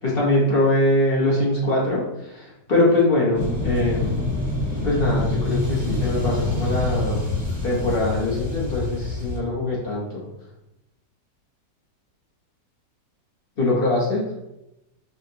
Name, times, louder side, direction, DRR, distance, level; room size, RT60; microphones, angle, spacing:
voice 1, 0.0-4.2 4.8-7.3 7.6-10.2 13.6-14.3, left 2 dB, 35° left, -6 dB, 1.1 m, -22 dB
sound 1, 3.3-9.4, left 2 dB, 20° right, 0.5 m, -26 dB
5.5 x 2.5 x 2.8 m, 0.89 s
omnidirectional pair, 2.0 m